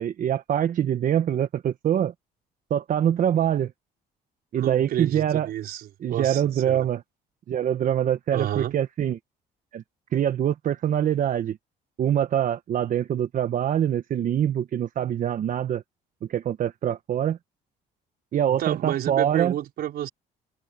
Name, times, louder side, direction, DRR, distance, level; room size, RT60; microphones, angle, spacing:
voice 1, 0.0-2.1 2.7-3.7 4.5-5.5 6.0-7.0 7.5-9.2 9.7-9.8 10.1-11.6 12.0-15.8 16.3-17.4 18.3-19.5, right 10 dB, 50° right, 1.1 m, -24 dB
voice 2, 4.5-6.9 8.3-8.8 18.5-20.1, right 12 dB, 65° right, 4.5 m, -30 dB
cardioid pair, 110°, 17 cm